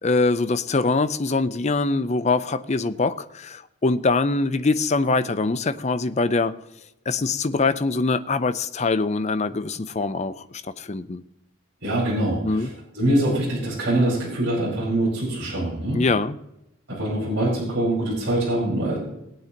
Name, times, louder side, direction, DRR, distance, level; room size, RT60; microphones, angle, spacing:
voice 1, 0.0-6.6 7.1-11.2 12.4-12.7 15.9-16.4, left 3 dB, 35° left, 13 dB, 0.5 m, -23 dB
voice 2, 11.8-16.0 16.9-19.0, right 1 dB, 55° right, -6 dB, 4.9 m, -24 dB
20.0 x 8.6 x 2.9 m, 0.86 s
head